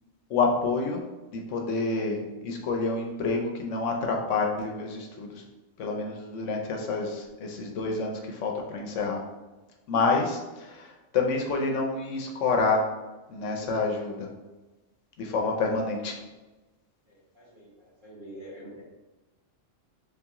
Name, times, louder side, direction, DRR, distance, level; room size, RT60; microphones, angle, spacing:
voice 1, 0.3-1.0 1.3-5.3 5.8-9.2 9.9-10.9 11.1-12.8 13.3-14.3 15.2-16.1, left 3 dB, 75° left, 1 dB, 1.0 m, -28 dB
voice 2, 17.1-17.7 18.0-18.8, right 1 dB, 40° right, -7 dB, 1.6 m, -45 dB
3.6 x 3.5 x 2.9 m, 1.1 s
omnidirectional pair, 1.3 m